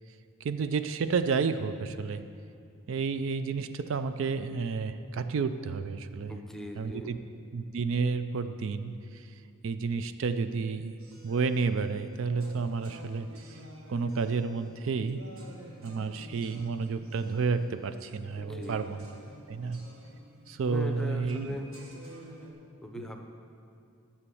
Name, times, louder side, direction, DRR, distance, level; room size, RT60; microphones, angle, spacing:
voice 1, 0.4-2.3 2.9-6.4 6.8-7.2 7.5-9.3 9.6-10.9 11.2-13.6 13.9-15.2 15.8-19.0 19.5-19.9 20.5-21.6, right 4 dB, 65° right, 11 dB, 0.4 m, -31 dB
voice 2, 6.3-7.1 18.4-18.9 20.6-21.7 22.8-23.2, left 1 dB, ahead, 3 dB, 0.6 m, -39 dB
sound 1, 11.0-22.5, right 1 dB, 80° right, 1.5 m, -49 dB
9.9 x 6.9 x 7.0 m, 2.4 s
head